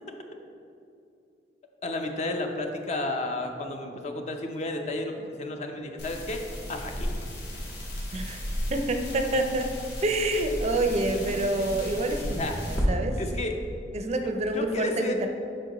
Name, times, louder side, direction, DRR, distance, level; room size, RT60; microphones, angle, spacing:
voice 1, 1.8-6.4 6.7-7.1 10.9-11.7 12.3-12.6 13.2-13.5 14.0-15.2, left 2 dB, 40° left, 4 dB, 0.6 m, -33 dB
sound 1, 6.0-12.8, equal, 65° left, 1.5 m, -34 dB
voice 2, 8.1-8.4 8.7-9.7 10.0-12.4 12.7-13.2 13.9-15.3, right 2 dB, 40° right, 5 dB, 0.4 m, -27 dB
7.4 x 5.4 x 2.9 m, 2.6 s
head